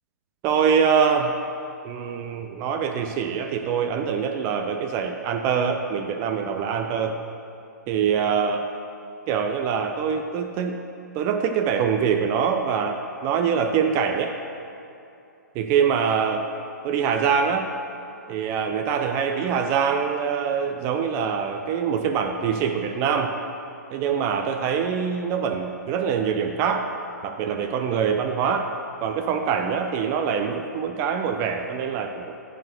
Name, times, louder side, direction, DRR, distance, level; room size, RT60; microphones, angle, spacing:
voice 1, 0.4-1.3 1.8-7.2 7.9-8.7 9.3-10.8 11.1-14.4 15.6-16.5 16.8-17.7 18.3-23.3 23.9-26.9 27.2-28.7 29.0-32.3, right 7 dB, 25° right, 5 dB, 0.4 m, -24 dB
8.5 x 4.4 x 6.3 m, 2.7 s
figure-of-eight pair, 130°, 10 cm